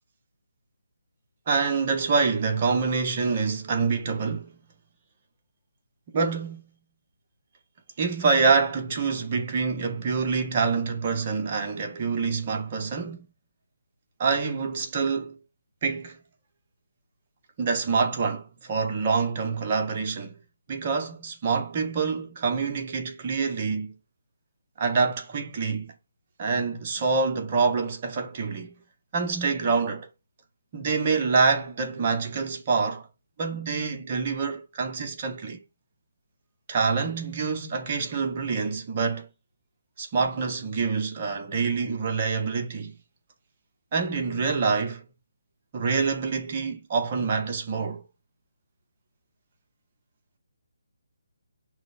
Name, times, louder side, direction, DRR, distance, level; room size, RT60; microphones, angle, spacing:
voice 1, 1.5-4.5 6.1-6.6 8.0-13.3 14.2-15.4 15.8-16.2 17.6-20.4 20.7-24.0 24.8-25.9 26.4-28.8 29.1-30.1 30.7-33.1 33.4-35.6 36.7-39.3 40.0-42.9 43.9-45.0 45.7-48.0, right 4 dB, 30° right, 0.7 m, -26 dB
6.0 x 2.0 x 2.3 m
figure-of-eight pair, 145°, 0 cm